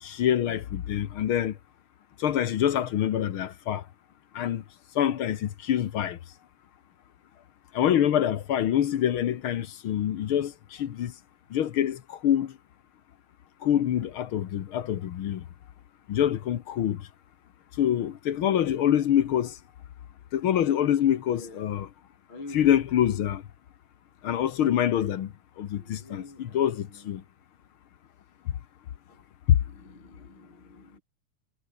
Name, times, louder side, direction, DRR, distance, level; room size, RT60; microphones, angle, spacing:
voice 1, 0.0-1.6 2.2-3.9 4.3-4.6 4.9-6.2 7.7-11.1 11.5-12.6 13.6-15.4 16.1-17.1 17.8-19.6 20.3-21.9 22.5-23.4 24.2-27.2 28.4-28.5 29.5-29.6, left 10 dB, 60° left, 1.5 m, -25 dB
voice 2, 21.3-21.7 22.3-22.7 25.7-27.2 29.1-29.2 29.6-31.0, left 2 dB, 40° left, 7.0 m, -47 dB
omnidirectional pair, 3.4 m